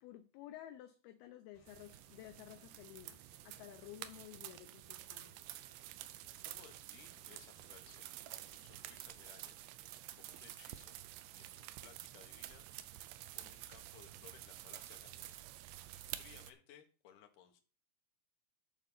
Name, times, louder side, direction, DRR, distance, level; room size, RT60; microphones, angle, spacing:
voice 1, 0.0-5.4, left 12 dB, 80° left, 8 dB, 2.3 m, -53 dB
Motorcycle / Engine, 1.5-9.1, left 3 dB, 50° left, 2.0 m, -71 dB
sound 1, 1.7-16.5, right 14 dB, 80° right, 2.6 m, -50 dB
voice 2, 6.4-8.1 8.5-9.6 10.2-11.0 11.3-13.1 13.4-15.4 16.0-17.6, left 9 dB, 65° left, 5 dB, 2.3 m, -61 dB
11.0 x 4.1 x 6.7 m, 0.36 s
omnidirectional pair, 5.0 m